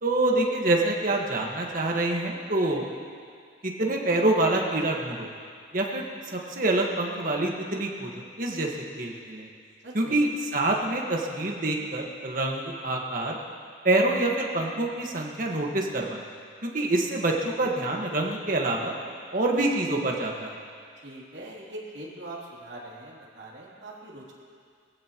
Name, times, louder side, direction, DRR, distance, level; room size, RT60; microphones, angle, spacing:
voice 1, 0.0-2.9 3.6-5.3 5.7-8.1 8.4-8.7 9.0-9.5 9.9-13.4 13.8-16.2 16.6-19.0 19.3-20.6, right 2 dB, 45° right, 0 dB, 1.6 m, -26 dB
voice 2, 9.8-10.2 21.0-24.3, right 1 dB, 70° right, -5 dB, 3.1 m, -42 dB
21.0 x 15.5 x 3.0 m, 2.2 s
head